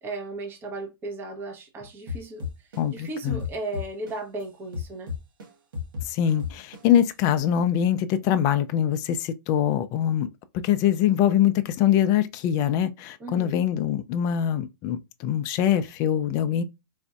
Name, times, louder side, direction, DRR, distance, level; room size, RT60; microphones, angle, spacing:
voice 1, 0.0-2.5 2.9-5.1 13.2-13.6, right 2 dB, 20° right, 0.9 m, -35 dB
sound 1, 2.1-4.4 4.7-7.1, left 6 dB, 75° right, 1.3 m, -33 dB
voice 2, 2.8-3.4 6.1-10.3 10.6-16.6, left 10 dB, 30° left, 0.4 m, -23 dB
4.1 x 2.5 x 2.3 m
hypercardioid pair, 135°, 11 cm